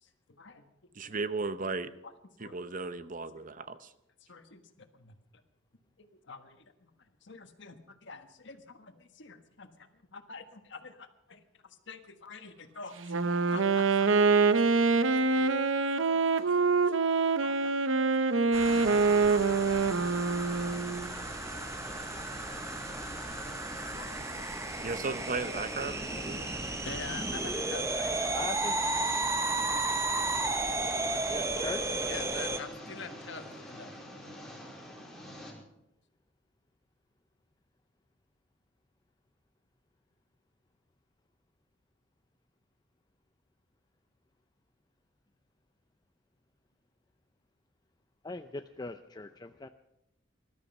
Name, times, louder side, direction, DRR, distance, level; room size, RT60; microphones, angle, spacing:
voice 1, 0.0-0.7 1.0-1.1 1.7-2.1 2.4-2.6 3.3-3.4 4.2-5.1 6.0-6.9 7.2-14.3 14.6-15.7 17.0-17.1 17.4-17.8 18.1-18.4 19.3-19.8 20.7-22.1 23.9-24.9 26.1-26.3 26.8-28.4 32.1-33.9, left 4 dB, 65° left, 8 dB, 1.5 m, -48 dB
voice 2, 1.0-1.9 2.4-3.9 24.8-26.0 26.2-26.5, right 3 dB, 45° right, 13 dB, 0.8 m, -35 dB
Wind instrument woodwind instrument, 13.0-21.1, right 4 dB, 80° right, 0.8 m, -25 dB
voice 3, 18.4-18.8 28.3-28.8 31.3-32.0 48.2-49.7, left 3 dB, 20° left, 8 dB, 0.5 m, -40 dB
sound 1, 18.5-32.6, right 2 dB, 15° right, 1.0 m, -34 dB
sound 2, 18.6-35.5, equal, ahead, 4.4 m, -45 dB
20.0 x 12.5 x 5.5 m, 0.86 s
head